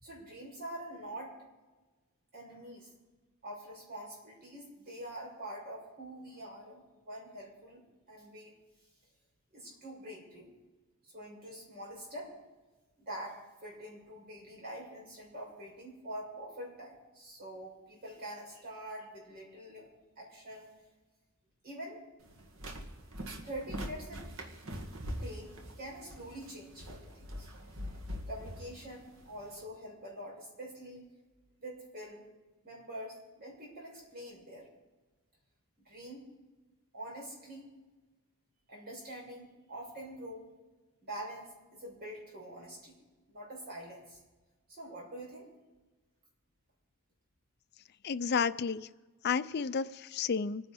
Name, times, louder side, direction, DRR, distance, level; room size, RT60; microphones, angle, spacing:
voice 1, 0.0-1.3 2.3-2.9 3.4-7.8 8.1-8.6 9.5-10.5 11.1-12.3 13.0-19.9 20.2-20.7 21.6-22.0 23.4-24.5 25.1-25.5 25.8-27.5 28.3-31.0 31.6-32.3 32.6-34.7 35.8-36.3 36.9-37.7 38.7-40.5 41.0-42.9 43.3-44.2 44.7-45.5, right 1 dB, 45° right, -3 dB, 6.3 m, -45 dB
sound 1, 22.2-29.6, equal, 65° right, 1.9 m, -43 dB
voice 2, 48.0-48.9 49.2-50.7, left 6 dB, 45° left, 14 dB, 0.4 m, -32 dB
26.0 x 9.9 x 4.3 m, 1.2 s
head